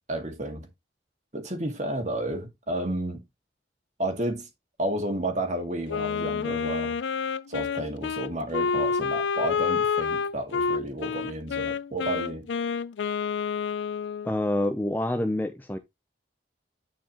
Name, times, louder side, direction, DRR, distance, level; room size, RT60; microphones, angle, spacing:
voice 1, 0.1-0.7 1.3-3.2 4.0-4.5 4.8-7.0 7.5-12.5, right 1 dB, 40° right, 2.1 m, -31 dB
Wind instrument woodwind instrument, 5.9-14.3, left 5 dB, 75° left, 0.4 m, -28 dB
voice 2, 14.2-15.8, left 1 dB, 10° left, 0.6 m, -27 dB
10.0 x 4.6 x 3.0 m
head